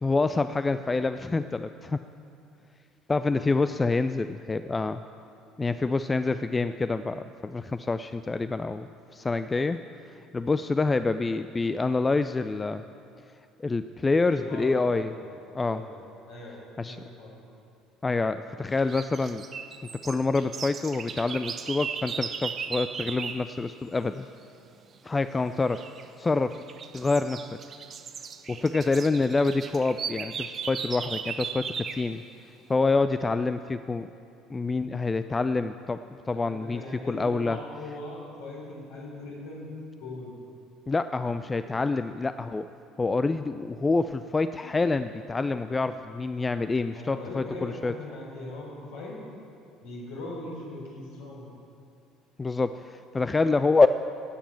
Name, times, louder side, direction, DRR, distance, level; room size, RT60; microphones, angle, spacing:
voice 1, 0.0-2.0 3.1-5.0 5.6-9.8 10.3-12.8 13.6-15.1 15.5-15.8 16.8-17.0 18.0-19.4 20.0-24.3 25.0-25.8 26.2-26.6 26.9-27.5 28.5-32.2 32.7-34.1 34.5-36.0 36.3-36.8 37.1-37.6 40.9-42.7 43.0-47.9 52.4-53.9, left 3 dB, 20° left, 11 dB, 0.4 m, -27 dB
voice 2, 14.3-15.3 15.6-16.6 16.8-17.4 36.3-39.7 40.0-40.4 46.9-49.2 49.8-51.5, left 2 dB, 60° left, -4 dB, 4.0 m, -40 dB
sound 1, 18.7-23.5 25.7-26.0 26.5-32.1, right 6 dB, 35° right, 0.9 m, -36 dB
14.0 x 9.1 x 7.2 m, 2.6 s
figure-of-eight pair, 60°, 0 cm